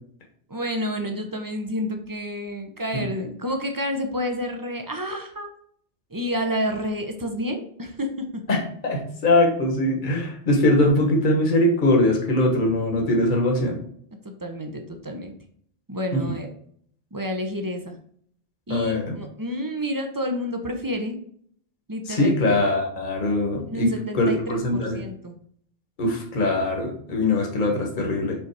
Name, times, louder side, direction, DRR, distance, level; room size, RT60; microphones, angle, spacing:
voice 1, 0.5-5.5 6.1-8.4 14.2-15.3 15.9-16.5 17.1-18.0 18.7-21.2 21.9-22.3 23.7-24.6 24.9-25.3, equal, 20° right, 4 dB, 0.6 m, -29 dB
voice 2, 8.5-13.8 16.3-16.4 18.7-19.2 22.1-25.0 26.0-28.3, left 1 dB, 45° left, 1 dB, 1.3 m, -22 dB
5.4 x 4.1 x 4.7 m, 0.62 s
omnidirectional pair, 1.2 m